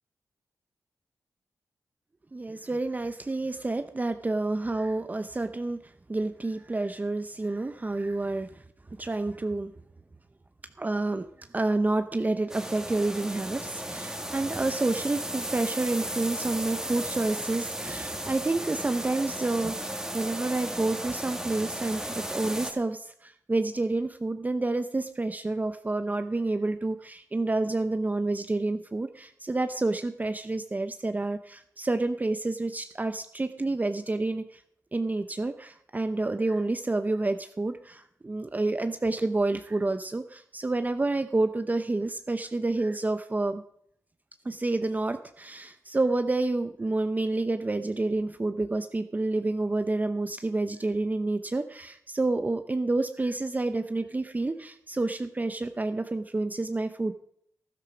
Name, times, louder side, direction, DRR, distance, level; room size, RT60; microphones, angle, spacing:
voice 1, 2.3-8.6 9.0-9.7 10.8-34.6 34.9-43.6 44.4-57.1, right 2 dB, 25° right, 9 dB, 0.7 m, -29 dB
sound 1, 12.5-22.7, right 1 dB, 10° right, 2.1 m, -35 dB
13.0 x 11.5 x 5.1 m, 0.67 s
cardioid pair, 65°, 6 cm